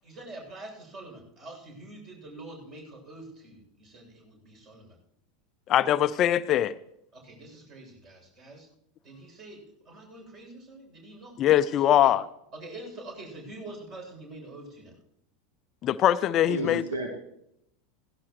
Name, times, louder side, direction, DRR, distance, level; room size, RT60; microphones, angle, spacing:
voice 1, 0.0-5.0 7.1-8.7 9.0-11.4 11.8-12.1 12.5-14.9, right 2 dB, 35° right, 1 dB, 7.6 m, -45 dB
voice 2, 5.7-6.7 11.4-12.2 15.8-16.8, left 11 dB, 40° left, 16 dB, 0.5 m, -22 dB
voice 3, 16.3-17.1, right 1 dB, 75° right, 3 dB, 1.9 m, -32 dB
17.0 x 16.5 x 3.2 m, 0.76 s
figure-of-eight pair, 80°, 0 cm